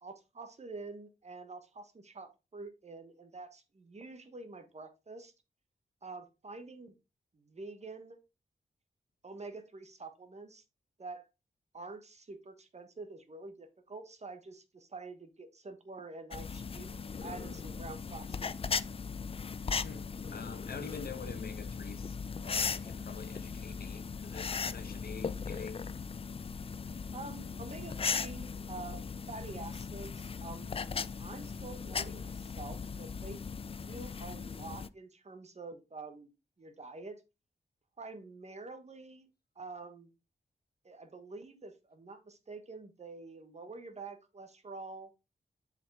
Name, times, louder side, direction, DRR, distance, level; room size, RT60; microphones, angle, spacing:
voice 1, 0.0-5.3 6.0-6.9 7.3-8.2 9.2-10.6 11.0-11.2 11.7-16.9 17.2-18.5 27.1-29.0 29.3-30.8 31.2-33.4 33.8-36.3 36.6-37.2 38.0-39.3 39.6-40.1 40.8-45.1, right 3 dB, 40° right, 1.3 m, -47 dB
sound 1, 16.3-34.9, left 5 dB, 35° left, 0.4 m, -38 dB
voice 2, 19.8-25.9, left 5 dB, 65° left, 1.0 m, -46 dB
7.2 x 5.1 x 3.5 m
wide cardioid pair, 95°, 17 cm